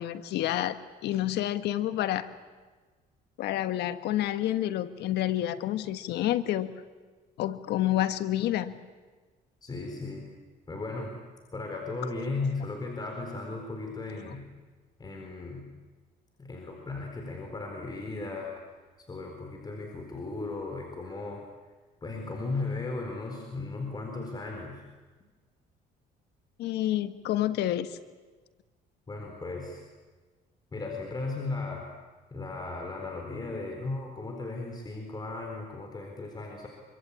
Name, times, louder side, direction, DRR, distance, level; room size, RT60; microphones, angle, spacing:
voice 1, 0.0-2.3 3.4-6.7 7.4-8.8 26.6-28.0, left 13 dB, 80° left, 11 dB, 1.5 m, -29 dB
voice 2, 9.6-10.2 10.7-11.2 11.5-14.4 15.0-15.7 16.4-18.5 19.1-21.4 22.0-24.8 29.1-29.8 30.7-31.9 32.3-36.7, left 3 dB, 25° left, 2 dB, 4.3 m, -36 dB
26.5 x 25.0 x 8.6 m, 1.3 s
cardioid pair, 110°, 17 cm